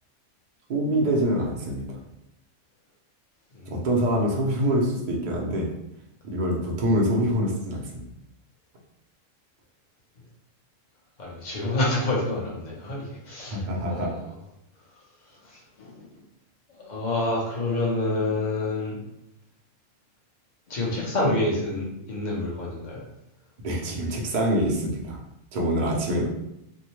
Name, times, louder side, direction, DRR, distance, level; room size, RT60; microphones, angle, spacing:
voice 1, 0.7-1.9 3.7-5.7 6.2-8.1 13.5-14.1 23.6-25.2 25.5-26.3, equal, 50° right, -2 dB, 0.6 m, -25 dB
voice 2, 11.2-13.6 13.8-14.3 15.4-16.1 16.8-19.0 20.7-23.0, left 2 dB, 40° left, -4 dB, 0.8 m, -28 dB
2.7 x 2.1 x 2.9 m, 0.84 s
omnidirectional pair, 1.4 m